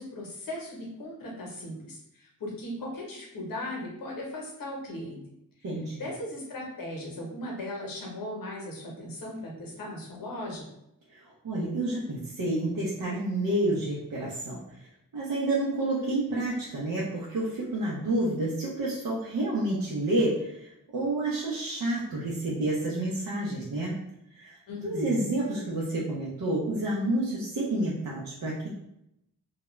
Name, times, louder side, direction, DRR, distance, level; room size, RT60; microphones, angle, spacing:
voice 1, 0.0-5.2 6.0-10.7 24.7-25.2, left 1 dB, 80° left, -2 dB, 0.8 m, -37 dB
voice 2, 5.6-6.0 11.1-11.2 11.4-14.9 15.1-23.9 24.4-28.7, right 1 dB, 75° right, -6 dB, 0.6 m, -29 dB
2.3 x 2.1 x 3.0 m, 0.81 s
wide cardioid pair, 180°, 34 cm